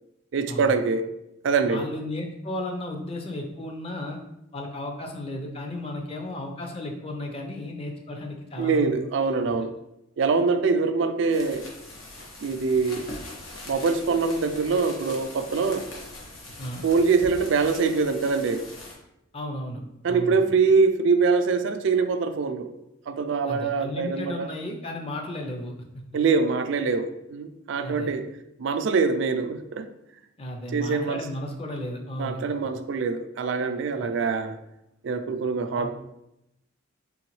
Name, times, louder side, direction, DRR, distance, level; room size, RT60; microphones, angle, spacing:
voice 1, 0.3-1.1 1.4-1.9 8.6-9.7 10.2-11.6 12.4-13.1 13.7-15.9 16.8-18.7 20.0-22.8 23.1-24.5 26.1-28.3 28.6-29.9 30.7-31.2 32.2-34.6 35.0-35.9, right 4 dB, 65° right, 9 dB, 0.3 m, -24 dB
voice 2, 1.7-4.2 4.5-8.9 9.4-9.5 16.6-16.8 19.3-19.8 20.1-20.5 23.5-25.7 27.8-28.1 30.4-32.4 34.0-34.2 35.8-35.9, left 1 dB, 30° left, 2 dB, 0.5 m, -34 dB
sound 1, 11.2-18.9, left 1 dB, 85° left, 1.0 m, -42 dB
3.8 x 3.4 x 3.0 m, 0.85 s
head